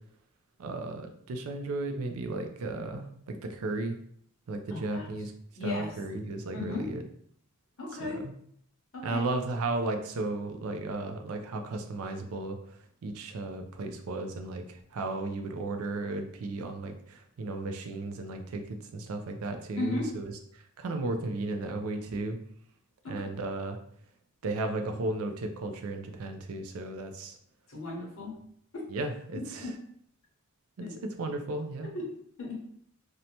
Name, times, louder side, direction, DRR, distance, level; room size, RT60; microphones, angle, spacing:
voice 1, 0.6-4.0 4.5-5.3 5.6-7.0 8.0-8.3 9.0-12.6 13.0-20.3 20.8-22.4 23.1-23.8 24.4-27.4 28.9-29.7 31.2-31.9, right 2 dB, 70° right, 6 dB, 0.4 m, -34 dB
voice 2, 4.7-5.1 5.6-6.0 6.5-6.9 7.8-8.2 8.9-9.2 19.8-20.2 23.0-23.3 27.7-28.4 28.7-28.8 29.3-29.8 30.8-31.0 31.8-32.6, left 2 dB, 60° left, -2 dB, 0.8 m, -36 dB
2.6 x 2.1 x 2.8 m, 0.65 s
head